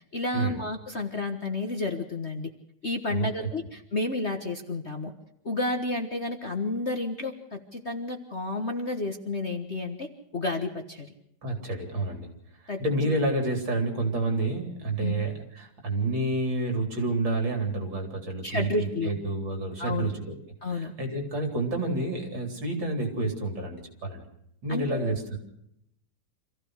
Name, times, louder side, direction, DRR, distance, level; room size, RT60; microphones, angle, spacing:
voice 1, 0.1-2.5 2.8-5.1 5.4-11.1 12.7-12.8 15.0-15.2 18.4-19.1 19.8-20.1 20.6-20.9 24.7-25.1, left 2 dB, 35° left, 5 dB, 1.5 m, -31 dB
voice 2, 3.1-3.5 11.4-12.3 12.8-20.3 20.7-24.2 24.6-25.4, right 2 dB, 60° right, 3 dB, 4.5 m, -29 dB
26.5 x 15.5 x 6.5 m, 0.76 s
omnidirectional pair, 2.4 m